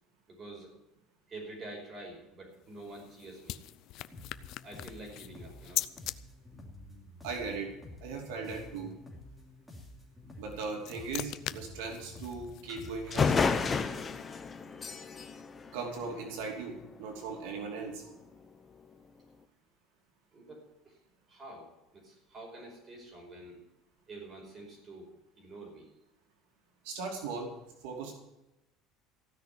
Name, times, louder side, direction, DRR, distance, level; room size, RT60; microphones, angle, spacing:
voice 1, 0.3-0.7 1.3-3.6 4.6-5.8 14.7-14.8 18.0-18.1 20.3-21.0 21.3-23.6 24.1-25.1 25.4-25.9, right 2 dB, 25° right, 1 dB, 5.3 m, -47 dB
sound 1, 2.5-6.2 10.3-13.7, left 15 dB, 55° left, 0.5 m, -41 dB
sound 2, 4.1-14.0, left 2 dB, ahead, 2.8 m, -50 dB
voice 2, 7.2-7.7 8.0-8.9 10.4-13.3 15.7-16.7 17.0-17.9 26.9-27.5 27.8-28.1, right 4 dB, 90° right, 1 dB, 2.8 m, -38 dB
sound 3, 12.7-12.8 13.1-16.6, left 5 dB, 20° left, 0.9 m, -31 dB
16.0 x 6.3 x 9.9 m, 0.94 s
cardioid pair, 155°, 0 cm